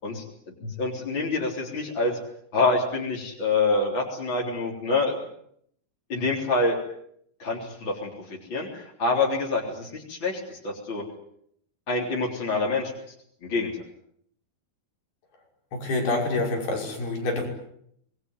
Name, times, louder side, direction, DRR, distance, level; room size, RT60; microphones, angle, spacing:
voice 1, 0.0-2.2 2.5-5.2 6.1-6.8 7.4-11.0 11.9-12.9 13.4-13.7, left 3 dB, 30° left, -2 dB, 4.1 m, -26 dB
voice 2, 15.7-17.5, left 2 dB, 85° left, 1 dB, 8.0 m, -27 dB
26.0 x 21.0 x 9.6 m, 0.71 s
omnidirectional pair, 4.4 m